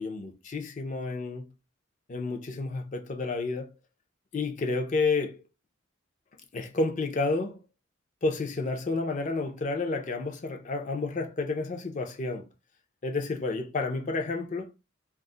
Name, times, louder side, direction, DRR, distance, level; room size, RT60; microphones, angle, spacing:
voice 1, 0.0-1.5 2.1-3.7 4.3-5.4 6.5-7.6 8.2-12.4 13.0-14.7, left 3 dB, 40° left, 0.4 m, -30 dB
2.3 x 2.0 x 3.7 m
head